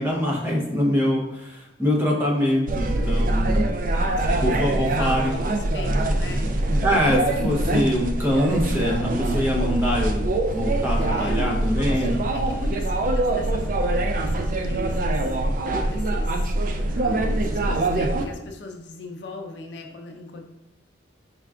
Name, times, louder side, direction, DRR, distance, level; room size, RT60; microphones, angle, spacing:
voice 1, 0.0-3.7 4.4-5.3 6.8-12.2, equal, 10° right, -3 dB, 0.7 m, -24 dB
sound 1, 2.7-18.3, right 1 dB, 45° right, 0.3 m, -24 dB
voice 2, 3.9-6.5 11.0-15.3 15.8-16.6 16.9-20.4, left 3 dB, 70° left, 2 dB, 0.5 m, -39 dB
4.5 x 3.6 x 2.3 m, 0.90 s
head